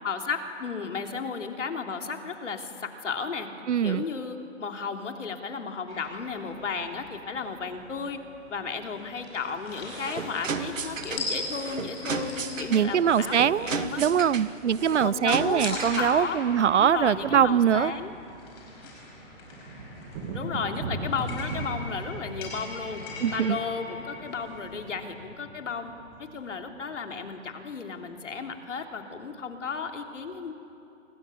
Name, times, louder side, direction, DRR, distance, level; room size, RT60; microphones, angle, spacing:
voice 1, 0.0-3.5 3.8-8.2 8.5-14.0 15.0-16.4 16.8-18.1 20.3-23.0 23.3-25.9 26.2-30.5, left 5 dB, 70° left, 4 dB, 3.1 m, -34 dB
voice 2, 3.7-4.0 12.7-13.7 14.0-17.9 23.2-23.6, right 8 dB, 65° right, 21 dB, 0.6 m, -23 dB
sound 1, 5.9-25.2, left 2 dB, 20° left, 5.1 m, -42 dB
sound 2, 9.7-16.3, right 4 dB, 85° right, 2.2 m, -34 dB
sound 3, 12.3-13.5 14.8-14.9 15.1-15.3 15.6-27.7, right 2 dB, 15° right, 1.5 m, -40 dB
29.5 x 25.5 x 7.0 m, 2.8 s
hypercardioid pair, 175°, 38 cm